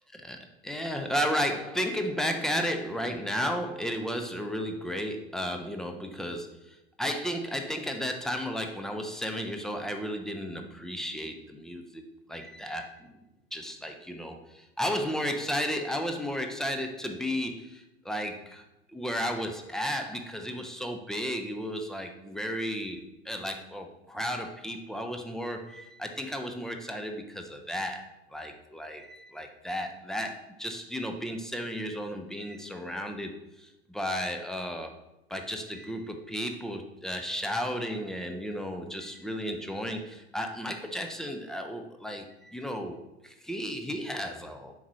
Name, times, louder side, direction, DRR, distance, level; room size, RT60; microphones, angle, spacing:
voice 1, 0.1-12.0 12.3-13.1 13.5-34.9 35.3-44.7, equal, ahead, 4 dB, 0.4 m, -34 dB
7.1 x 4.8 x 3.0 m, 0.90 s
figure-of-eight pair, 90°, 33 cm